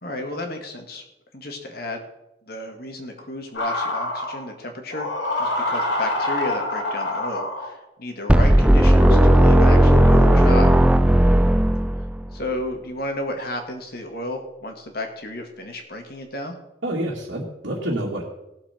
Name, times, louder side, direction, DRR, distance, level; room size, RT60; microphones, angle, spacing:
voice 1, 0.0-1.0 1.3-2.0 2.5-5.1 5.4-10.7 12.3-16.6, left 1 dB, 50° left, 4 dB, 2.0 m, -32 dB
sound 1, 3.5-4.4 4.9-7.8 8.7-10.4, left 1 dB, 70° left, 3.5 m, -26 dB
sound 2, 8.3-12.3, right 1 dB, 5° right, 0.3 m, -15 dB
voice 2, 16.8-18.2, right 1 dB, 85° right, -5 dB, 2.3 m, -28 dB
18.0 x 7.3 x 4.5 m, 0.90 s
head